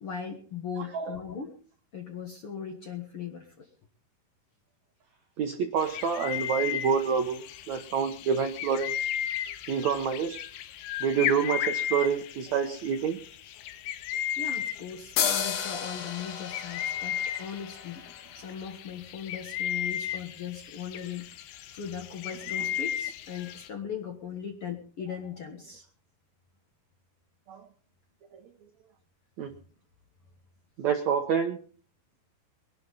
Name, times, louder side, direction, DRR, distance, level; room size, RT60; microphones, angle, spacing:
voice 1, 0.0-1.6 1.9-3.7 14.4-18.0 18.3-21.3 21.7-25.8, left 7 dB, 55° left, 3 dB, 1.7 m, -38 dB
voice 2, 5.4-9.1 9.7-10.4 11.0-13.2 27.5-27.6 29.4-29.5 30.8-31.6, right 7 dB, 70° right, 6 dB, 1.7 m, -28 dB
sound 1, 5.8-23.7, left 10 dB, 85° left, 3.0 m, -35 dB
sound 2, 15.2-18.7, left 8 dB, 70° left, 3.4 m, -33 dB
22.5 x 11.5 x 4.1 m, 0.42 s
omnidirectional pair, 4.5 m